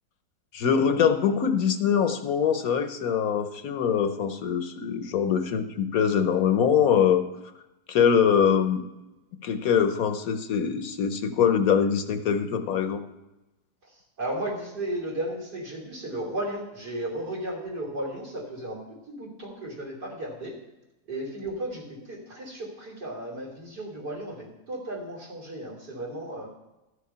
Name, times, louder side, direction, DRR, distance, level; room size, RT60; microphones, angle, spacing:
voice 1, 0.5-7.2 7.9-8.8 9.4-13.0, left 7 dB, 65° left, 8 dB, 1.1 m, -23 dB
voice 2, 14.2-18.8 19.1-20.5 21.1-26.5, right 1 dB, 75° right, -4 dB, 3.6 m, -34 dB
13.5 x 6.6 x 5.5 m, 0.99 s
omnidirectional pair, 1.8 m